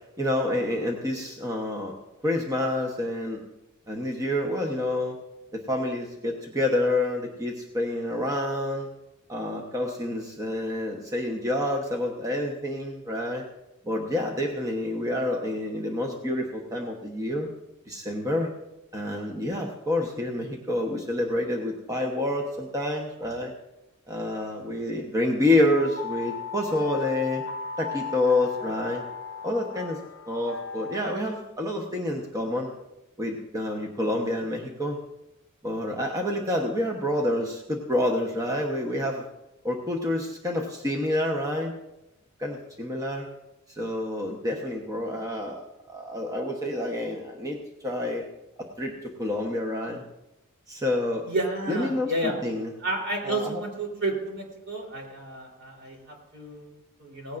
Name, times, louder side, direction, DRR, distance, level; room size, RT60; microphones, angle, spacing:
voice 1, 0.2-1.9 2.2-3.4 3.9-5.2 5.5-8.9 9.3-13.4 13.8-17.5 17.9-18.5 18.9-23.5 24.1-27.4 27.8-29.0 29.4-30.0 30.3-32.7 33.2-35.0 35.6-39.2 39.6-41.7 42.4-43.3 43.7-47.6 47.8-48.2 48.6-50.0 50.7-51.3 51.7-52.7 53.2-53.6, left 1 dB, 15° right, 1 dB, 1.1 m, -28 dB
sound 1, 25.7-31.2, left 6 dB, 60° left, 0.6 m, -36 dB
voice 2, 51.3-52.3 52.8-57.4, right 2 dB, 55° right, -1 dB, 3.7 m, -31 dB
18.0 x 15.5 x 2.6 m, 0.94 s
head